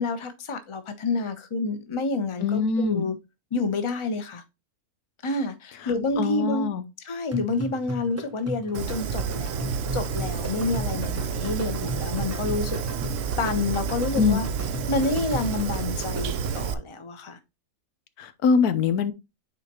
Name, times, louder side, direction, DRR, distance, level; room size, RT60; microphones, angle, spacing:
voice 1, 0.0-3.2 3.5-4.4 5.2-6.7 7.0-12.8 13.4-14.5 14.9-17.4, left 3 dB, 25° left, 0.8 m, -28 dB
voice 2, 2.4-3.0 6.2-6.8 14.1-14.4 18.2-19.1, left 5 dB, 90° left, 1.3 m, -23 dB
sound 1, 7.3-16.8, right 1 dB, 25° right, 0.3 m, -37 dB
Fire, 8.7-16.7, right 6 dB, 65° right, 0.9 m, -29 dB
9.4 x 4.2 x 2.9 m
omnidirectional pair, 1.6 m